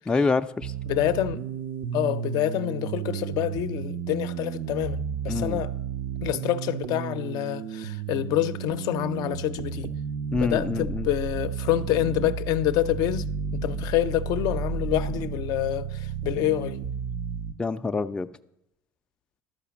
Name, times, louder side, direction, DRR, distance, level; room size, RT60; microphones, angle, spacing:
voice 1, 0.1-0.7 5.3-5.6 10.3-11.1 17.6-18.3, left 4 dB, 15° left, 0.4 m, -26 dB
sound 1, 0.6-17.5, right 7 dB, 65° right, 0.5 m, -32 dB
voice 2, 0.9-1.4 1.9-5.7 6.2-9.9 10.4-13.3 13.5-16.8, left 13 dB, 70° left, 0.5 m, -27 dB
12.0 x 4.9 x 7.0 m
cardioid pair, 110°, 7 cm